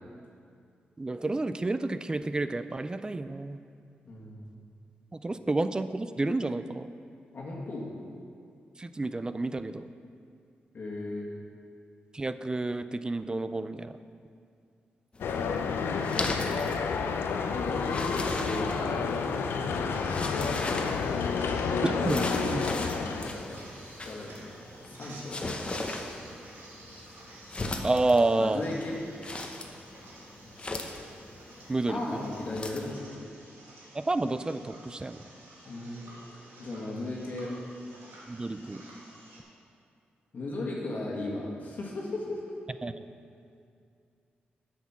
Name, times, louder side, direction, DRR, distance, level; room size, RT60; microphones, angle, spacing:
voice 1, 1.0-3.6 5.1-6.9 8.8-9.9 12.1-14.0 21.8-22.6 27.8-28.6 31.7-32.2 33.9-35.2 38.3-38.8 42.8-43.0, right 2 dB, 20° right, 12 dB, 0.4 m, -30 dB
voice 2, 4.1-4.6 7.3-7.9 10.7-11.3 15.2-15.9 17.5-19.0 22.7-23.6 24.0-25.4 28.4-29.0 31.9-33.3 35.7-36.0 36.6-37.5 40.3-42.6, left 2 dB, 55° left, -3 dB, 1.7 m, -36 dB
sound 1, 15.1-32.9, left 2 dB, 30° left, 0.9 m, -39 dB
sound 2, 15.2-23.3, left 5 dB, 80° left, 0.6 m, -30 dB
sound 3, 19.9-39.4, right 1 dB, 80° right, 1.8 m, -51 dB
8.0 x 7.2 x 5.9 m, 2.4 s
cardioid pair, 80°, 4 cm